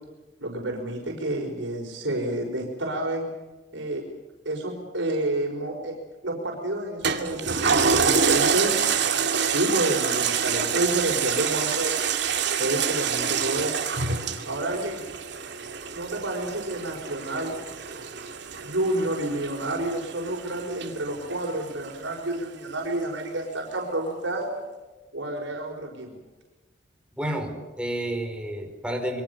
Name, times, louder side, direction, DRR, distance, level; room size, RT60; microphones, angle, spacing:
voice 1, 0.4-3.3 3.7-4.0 4.5-5.9 6.2-8.8 9.5-12.0 12.6-13.8 14.4-15.0 15.9-17.6 18.6-24.6 25.1-26.2, right 1 dB, 85° right, 0 dB, 5.4 m, -29 dB
Toilet flush, 7.0-21.9 22.3-22.4, right 6 dB, 65° right, 2.5 m, -27 dB
voice 2, 27.2-29.2, right 1 dB, 5° right, 3 dB, 4.6 m, -30 dB
27.5 x 23.0 x 7.1 m, 1.2 s
head